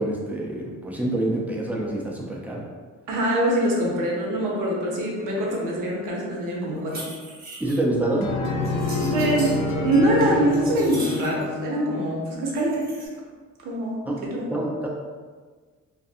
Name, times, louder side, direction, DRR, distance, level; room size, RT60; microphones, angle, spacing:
voice 1, 0.0-2.7 7.6-8.3 14.0-14.2 14.5-14.9, right 1 dB, 5° right, -3 dB, 0.3 m, -26 dB
voice 2, 3.1-7.1 9.0-12.9 13.6-14.0 14.3-14.5, right 1 dB, 75° right, -2 dB, 0.7 m, -24 dB
sound 1, 6.8-7.8 8.6-9.6 10.1-11.4 12.5-13.1, right 1 dB, 30° right, 0.7 m, -40 dB
sound 2, 8.2-12.4, left 3 dB, 60° left, 0.5 m, -28 dB
2.5 x 2.5 x 2.5 m, 1.5 s
cardioid pair, 125°, 32 cm